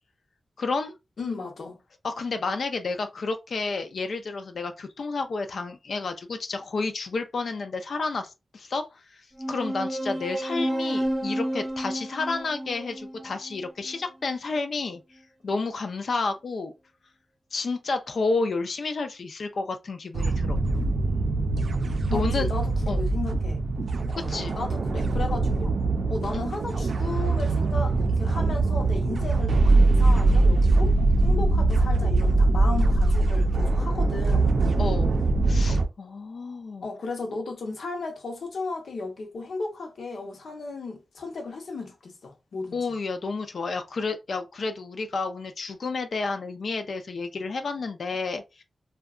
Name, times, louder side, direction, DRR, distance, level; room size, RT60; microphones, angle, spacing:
voice 1, 0.6-1.0 2.0-15.0 15.4-16.7 17.5-20.6 22.1-22.5 22.9-23.0 24.2-24.6 26.3-26.4 34.8-35.1 35.4-36.8 42.7-48.6, left 3 dB, 60° left, 0.3 m, -30 dB
voice 2, 1.2-1.8 22.1-23.6 24.2-25.7 26.1-31.0 31.2-34.6 36.8-42.8, left 3 dB, 75° left, 0.7 m, -35 dB
sound 1, 9.4-14.3, right 1 dB, 25° right, 0.6 m, -31 dB
sound 2, 20.1-35.8, right 2 dB, 65° right, 0.4 m, -22 dB
2.7 x 2.2 x 2.4 m
wide cardioid pair, 160°, 0 cm